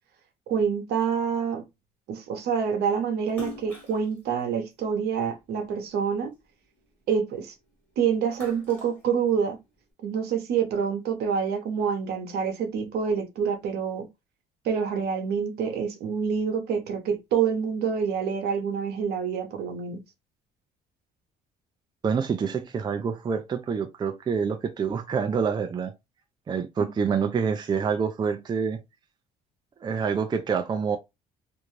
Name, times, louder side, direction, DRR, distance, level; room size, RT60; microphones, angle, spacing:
voice 1, 0.5-1.6 2.1-6.3 7.1-7.5 8.0-9.6 10.0-14.1 14.6-20.0 26.8-26.9, right 7 dB, 70° right, 0.9 m, -27 dB
Splash splatter, 3.3-5.8 6.3-7.7 8.1-9.8, left 3 dB, 10° left, 1.4 m, -44 dB
voice 2, 22.0-25.9 26.5-28.8 29.8-31.0, right 6 dB, 25° right, 0.4 m, -27 dB
2.5 x 2.2 x 3.1 m
cardioid pair, 110°, 17 cm